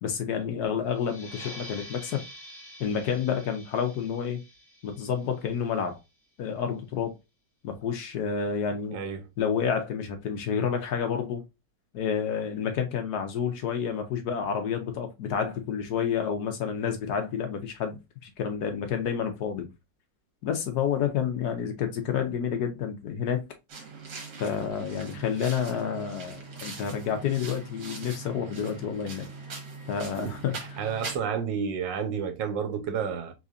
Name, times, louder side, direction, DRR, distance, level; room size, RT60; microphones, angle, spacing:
voice 1, 0.0-2.2 2.8-4.4 4.8-6.0 6.4-7.1 7.6-9.0 9.4-11.4 11.9-19.7 20.4-23.4 24.4-29.3 29.9-30.9, left 7 dB, 65° left, 1.2 m, -29 dB
sound 1, 0.9-6.2, equal, 30° left, 1.2 m, -47 dB
voice 2, 8.9-9.2 30.2-30.3 30.8-33.3, right 7 dB, 85° right, 1.4 m, -30 dB
sound 2, 23.7-31.2, right 3 dB, 65° right, 1.9 m, -41 dB
3.9 x 3.2 x 2.5 m
omnidirectional pair, 1.9 m